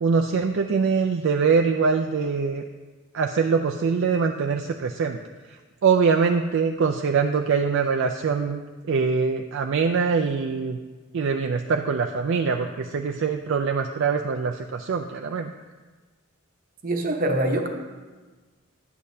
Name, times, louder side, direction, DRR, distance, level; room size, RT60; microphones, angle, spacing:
voice 1, 0.0-2.6 3.1-5.2 5.8-10.8 11.1-15.5, right 5 dB, 60° right, 3 dB, 0.4 m, -23 dB
voice 2, 16.8-17.7, right 1 dB, 40° right, 3 dB, 0.9 m, -24 dB
11.0 x 8.5 x 2.7 m, 1.3 s
head